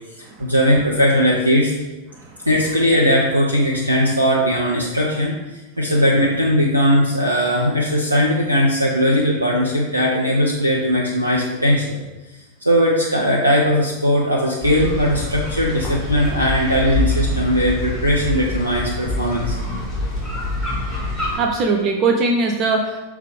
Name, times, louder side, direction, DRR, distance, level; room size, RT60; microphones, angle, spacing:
voice 1, 0.2-1.7 2.5-12.0 12.6-19.6, equal, 85° right, -3 dB, 0.8 m, -18 dB
sound 1, 14.6-21.4, left 1 dB, 10° left, 2.1 m, -25 dB
voice 2, 21.4-23.1, right 3 dB, 35° right, 2 dB, 0.7 m, -20 dB
6.5 x 3.6 x 5.1 m, 1.1 s
figure-of-eight pair, 90°, 0 cm